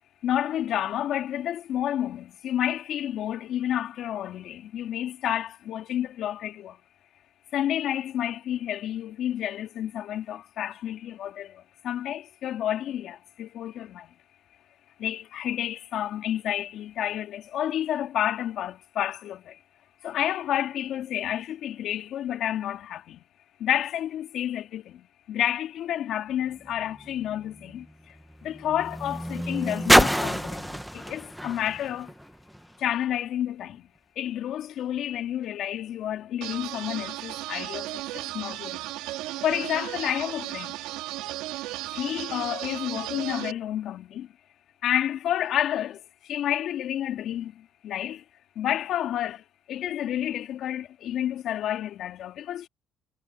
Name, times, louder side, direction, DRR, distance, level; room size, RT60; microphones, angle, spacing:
voice 1, 0.2-6.8 7.5-14.1 15.0-19.6 20.0-23.2 23.6-28.2 28.4-32.1 32.8-33.9 34.2-38.9 39.4-40.8 41.9-44.3 44.8-48.2 48.6-52.7, left 11 dB, 70° left, 2.4 m, -30 dB
sound 1, 26.4-32.9 33.7-33.8, equal, ahead, 1.8 m, -27 dB
sound 2, 36.4-43.5, right 18 dB, 85° right, 3.9 m, -35 dB
supercardioid pair, 65°, 0 cm